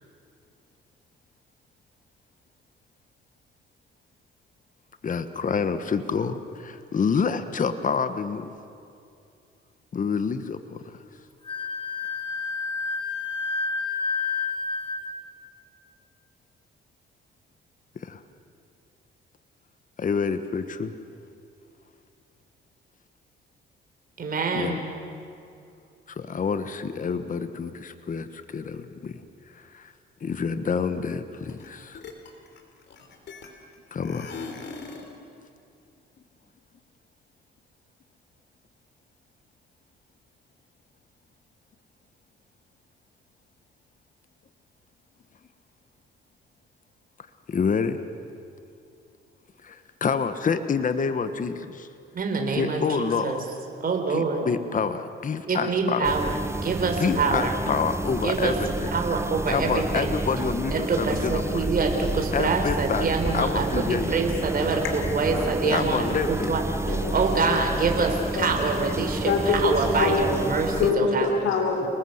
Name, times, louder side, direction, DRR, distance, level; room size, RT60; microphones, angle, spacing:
voice 1, 5.0-8.5 9.9-10.8 17.9-18.2 20.0-20.9 24.5-24.8 26.1-29.2 29.5-29.9 30.2-32.0 33.9-34.3 47.5-48.0 49.6-51.9 52.5-53.5 54.1-56.2 57.0-58.9 59.5-61.7 62.3-64.2 65.7-66.5, left 5 dB, 40° left, 10 dB, 1.4 m, -28 dB
Wind instrument woodwind instrument, 11.4-15.2, left 4 dB, 25° left, 2.9 m, -29 dB
voice 2, 24.2-24.8 52.1-53.4 53.8-54.5 55.5-56.3 56.6-57.5 58.2-58.5 58.9-60.1 60.7-66.0 66.3-66.6 67.1-68.1 68.4-69.3 69.6-71.2, right 4 dB, 45° right, 3 dB, 4.2 m, -25 dB
sound 1, 31.5-31.7 31.9-33.7 34.0-35.2, left 4 dB, 65° left, 3.6 m, -40 dB
sound 2, 56.0-70.9, right 2 dB, 15° right, 1.0 m, -30 dB
voice 3, 66.5-67.6 67.9-68.0 68.3-68.8 69.2-70.5 70.8-71.9, left 4 dB, 80° left, 2 dB, 4.2 m, -26 dB
29.5 x 20.5 x 8.1 m, 2.5 s
cardioid pair, 90°, 20 cm